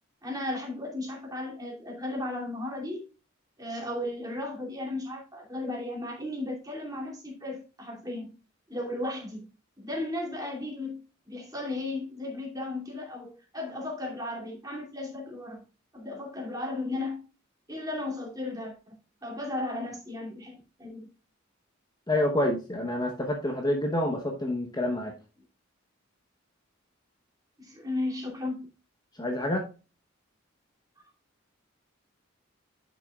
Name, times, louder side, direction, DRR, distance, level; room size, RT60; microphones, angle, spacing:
voice 1, 0.2-3.0 3.6-8.3 8.7-9.5 9.8-11.0 11.3-15.6 15.9-17.2 17.7-21.1 27.6-28.7, left 2 dB, 20° right, 2.6 m, -35 dB
voice 2, 22.1-25.1 29.2-29.6, left 1 dB, 20° left, 0.9 m, -28 dB
11.0 x 6.1 x 2.3 m
head